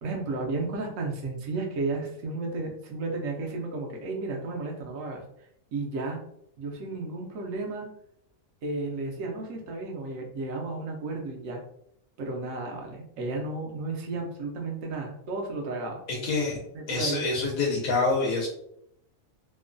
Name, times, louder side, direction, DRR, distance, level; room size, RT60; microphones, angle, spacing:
voice 1, 0.0-5.2 5.7-6.2 6.6-7.9 8.6-11.6 12.2-16.0 16.7-17.2, right 3 dB, 70° right, 1 dB, 1.0 m, -33 dB
voice 2, 16.1-16.6 16.9-18.5, left 3 dB, 80° left, -2 dB, 1.1 m, -26 dB
3.0 x 2.2 x 2.4 m, 0.74 s
omnidirectional pair, 1.5 m